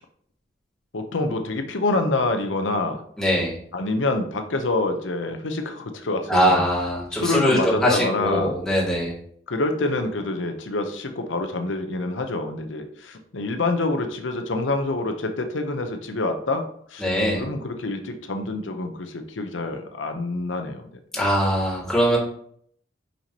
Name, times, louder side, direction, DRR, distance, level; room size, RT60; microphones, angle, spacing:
voice 1, 0.9-3.0 3.7-6.6 7.1-8.5 9.5-17.1 17.3-20.8, left 2 dB, 80° left, 6 dB, 0.8 m, -26 dB
voice 2, 3.2-3.5 6.3-9.1 17.0-17.4 21.1-22.2, equal, 5° left, -6 dB, 2.2 m, -21 dB
5.9 x 5.7 x 2.9 m, 0.64 s
head